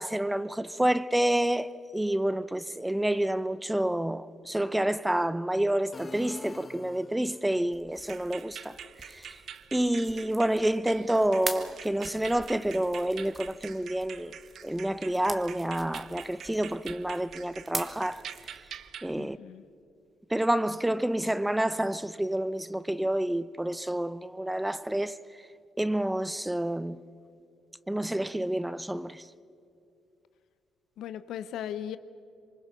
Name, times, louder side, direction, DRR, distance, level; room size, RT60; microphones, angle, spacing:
voice 1, 0.0-9.4 9.7-14.4 14.6-18.2 19.0-19.4 20.3-25.2 25.8-27.0 27.9-29.3, right 1 dB, 5° right, 0.7 m, -29 dB
sound 1, 5.9-7.5, left 3 dB, 30° left, 1.4 m, -44 dB
sound 2, 7.7-18.9, right 2 dB, 20° right, 1.8 m, -44 dB
sound 3, 8.0-19.2, right 8 dB, 65° right, 0.8 m, -46 dB
voice 2, 19.2-19.6 31.0-32.0, left 10 dB, 80° left, 0.8 m, -37 dB
26.0 x 24.0 x 6.0 m
cardioid pair, 90°, 0 cm